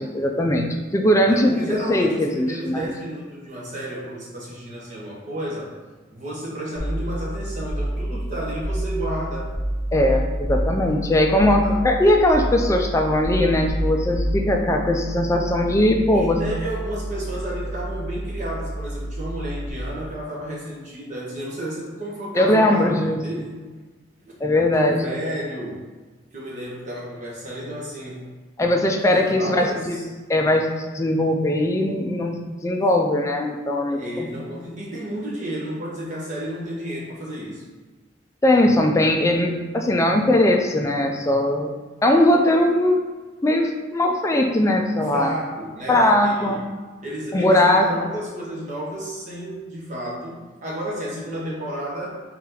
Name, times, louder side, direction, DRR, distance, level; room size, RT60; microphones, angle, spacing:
voice 1, 0.0-2.9 9.9-16.4 22.3-23.5 24.4-25.0 28.6-30.7 30.9-34.3 34.6-34.7 38.4-41.7 42.0-43.0 43.4-45.3 45.9-46.6 47.3-48.1, left 1 dB, 15° left, 3 dB, 0.3 m, -20 dB
voice 2, 1.2-5.7 6.1-9.5 11.6-11.8 16.1-23.5 24.2-24.3 24.8-25.8 26.3-28.3 29.1-30.0 33.9-37.6 40.1-40.2 45.1-46.6 47.0-52.2, right 1 dB, 40° right, -5 dB, 1.1 m, -32 dB
sound 1, 6.8-19.7, right 1 dB, 20° right, 1.4 m, -28 dB
4.1 x 2.9 x 3.8 m, 1.3 s
head